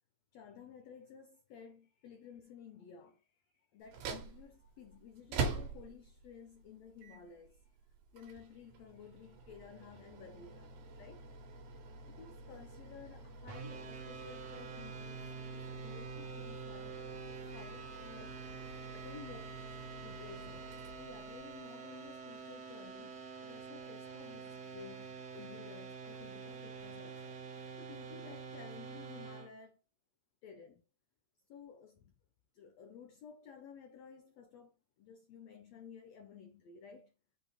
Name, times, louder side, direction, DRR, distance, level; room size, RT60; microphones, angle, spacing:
voice 1, 0.3-3.3 3.7-7.7 8.1-11.3 12.2-18.4 18.9-27.4 27.8-29.8 30.4-30.8 31.5-32.1 32.5-37.1, left 7 dB, 85° left, 1.5 m, -54 dB
sound 1, 3.8-21.6, right 4 dB, 75° right, 2.9 m, -46 dB
sound 2, 13.5-29.5, right 5 dB, 60° right, 2.0 m, -47 dB
6.7 x 3.3 x 4.9 m
omnidirectional pair, 4.1 m